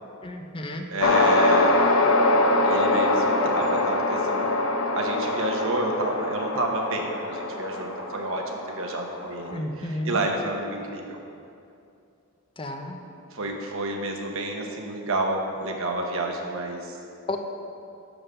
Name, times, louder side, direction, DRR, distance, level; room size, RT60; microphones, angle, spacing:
voice 1, 0.2-0.9 9.5-10.2 12.6-13.0 17.3-17.4, left 1 dB, 25° left, 4 dB, 0.6 m, -32 dB
voice 2, 0.9-1.8 2.6-4.5 4.9-8.4 8.7-11.2 13.3-17.0, right 2 dB, 65° right, 1 dB, 1.0 m, -30 dB
sound 1, 1.0-9.5, left 2 dB, 75° left, 0.7 m, -23 dB
11.0 x 3.8 x 6.7 m, 2.6 s
head